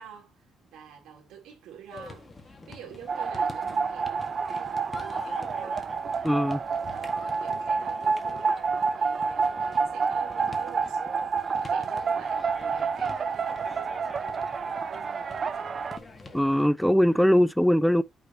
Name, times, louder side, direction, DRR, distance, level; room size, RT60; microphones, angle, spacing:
voice 1, 0.0-5.9 6.9-11.0 11.6-15.8, right 8 dB, 85° right, 3.4 m, -48 dB
sound 1, 1.9-16.6, left 3 dB, 25° left, 1.8 m, -46 dB
sound 2, 3.1-16.0, right 5 dB, 45° right, 0.6 m, -29 dB
voice 2, 6.2-6.6 16.3-18.0, equal, ahead, 0.4 m, -21 dB
8.1 x 5.6 x 2.9 m
cardioid pair, 90°, 0 cm